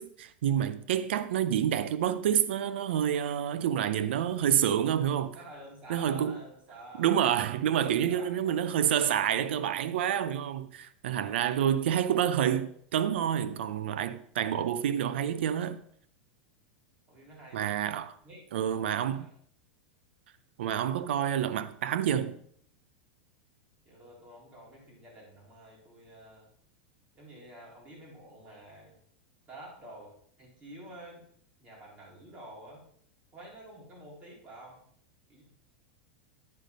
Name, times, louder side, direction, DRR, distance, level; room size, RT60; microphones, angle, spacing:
voice 1, 0.0-5.4 5.9-6.4 7.0-15.8 17.5-18.1 18.5-19.3 20.6-22.4, right 9 dB, 80° right, 0.6 m, -28 dB
voice 2, 5.3-7.1 7.8-9.5 11.1-11.7 17.1-17.8 18.2-18.4 19.1-19.3 23.8-26.5 27.2-28.9 29.5-30.1 30.4-31.3 31.6-32.8 33.3-34.8 35.3-35.4, right 1 dB, 20° right, 3.8 m, -49 dB
9.7 x 5.0 x 5.3 m
supercardioid pair, 145°, 6 cm